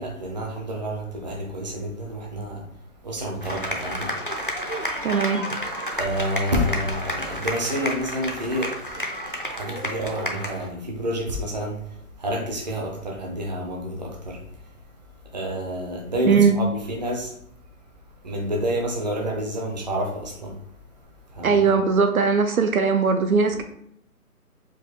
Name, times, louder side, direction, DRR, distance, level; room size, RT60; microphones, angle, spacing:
voice 1, 0.0-2.6 3.0-4.1 5.9-9.1 9.5-14.4 15.3-17.3 18.2-20.6 21.3-21.6 23.5-23.6, equal, 30° right, -1 dB, 0.7 m, -29 dB
sound 1, 3.4-10.7, equal, 40° left, 0.4 m, -31 dB
voice 2, 5.0-5.5 16.2-16.6 21.4-23.6, right 5 dB, 65° right, 6 dB, 0.6 m, -19 dB
4.8 x 2.3 x 4.2 m, 0.73 s
hypercardioid pair, 165°, 46 cm